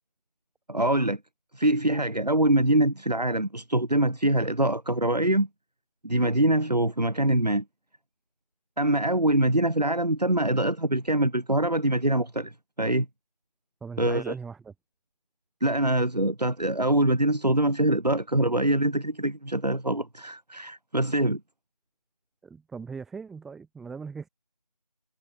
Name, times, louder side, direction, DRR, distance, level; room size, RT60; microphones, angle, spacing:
voice 1, 0.7-1.2 1.5-5.5 6.0-7.6 8.8-13.1 14.0-14.3 15.6-21.4, right 1 dB, 90° right, 2.8 m, -24 dB
voice 2, 13.8-14.7 22.4-24.3, right 5 dB, ahead, 4.9 m, -39 dB
figure-of-eight pair, 170°, 20 cm